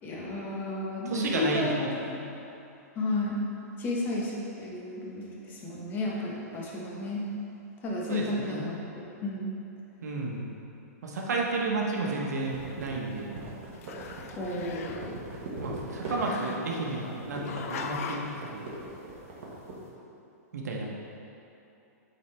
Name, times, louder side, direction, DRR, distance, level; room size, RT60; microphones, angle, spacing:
voice 1, 0.0-1.9 3.0-3.4 3.8-7.2 7.8-8.8 9.2-9.6 14.4-15.1, left 2 dB, 20° left, -4 dB, 1.1 m, -32 dB
voice 2, 1.1-2.2 8.1-8.7 10.0-10.5 11.0-13.3 15.6-18.7 20.5-20.9, right 3 dB, 80° right, -2 dB, 1.2 m, -32 dB
Growling, 12.2-13.5 13.7-15.2 16.0-17.0 17.4-18.4, left 6 dB, 60° left, 0.5 m, -41 dB
sound 1, 12.4-19.8, right 2 dB, 45° right, 1.4 m, -41 dB
8.7 x 4.0 x 3.4 m, 2.8 s
hypercardioid pair, 150°, 9 cm